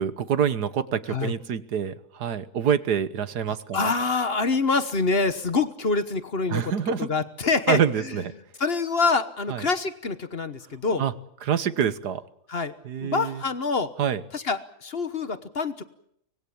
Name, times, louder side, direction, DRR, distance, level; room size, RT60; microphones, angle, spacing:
voice 1, 0.0-3.9 6.5-7.1 7.7-8.3 9.5-9.7 11.0-11.1 11.4-12.2 12.9-13.4 14.0-14.2, right 8 dB, 80° right, 14 dB, 1.8 m, -26 dB
voice 2, 3.5-6.7 7.0-8.2 8.6-11.0 12.5-12.7 13.0-13.9 14.3-15.8, left 4 dB, 40° left, 12 dB, 1.3 m, -26 dB
25.0 x 19.5 x 8.6 m, 0.73 s
omnidirectional pair, 1.7 m